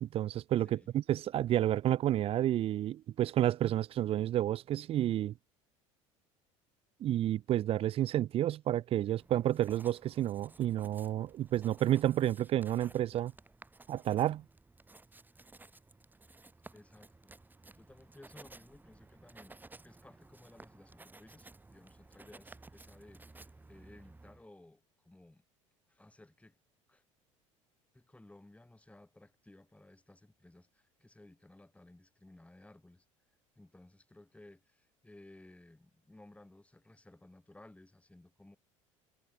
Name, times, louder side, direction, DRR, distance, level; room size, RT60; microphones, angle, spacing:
voice 1, 0.0-5.3 7.0-13.3 13.9-14.4, right 12 dB, 35° right, 0.4 m, -30 dB
voice 2, 0.6-0.9 15.3-15.4 16.7-17.3 17.8-19.6 19.8-25.4 25.9-26.6 26.9-27.0 27.9-33.0 33.6-38.6, left 2 dB, 10° left, 2.8 m, -58 dB
Writing, 9.1-24.4, right 2 dB, 10° right, 1.0 m, -56 dB
hypercardioid pair, 70°, 17 cm